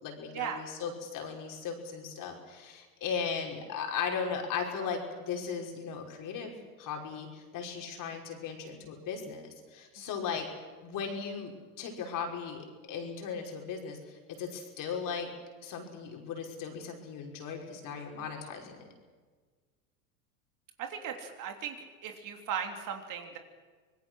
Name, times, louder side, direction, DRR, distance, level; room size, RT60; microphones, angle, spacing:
voice 1, 0.0-6.5 6.8-10.5 10.8-15.3 15.6-18.9, left 6 dB, 40° left, 2 dB, 5.3 m, -37 dB
voice 2, 20.8-21.7 22.0-23.4, right 8 dB, 40° right, 4 dB, 3.3 m, -37 dB
26.0 x 20.5 x 6.4 m, 1.5 s
hypercardioid pair, 100°, 47 cm